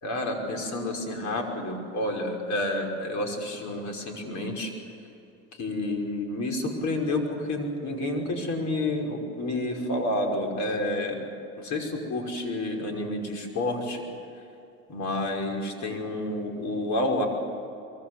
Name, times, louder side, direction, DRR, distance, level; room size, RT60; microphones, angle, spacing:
voice 1, 0.0-4.7 5.6-11.2 11.6-14.0 14.9-17.3, left 1 dB, 45° left, 2 dB, 5.7 m, -29 dB
24.0 x 24.0 x 8.1 m, 2.8 s
supercardioid pair, 100°, 38 cm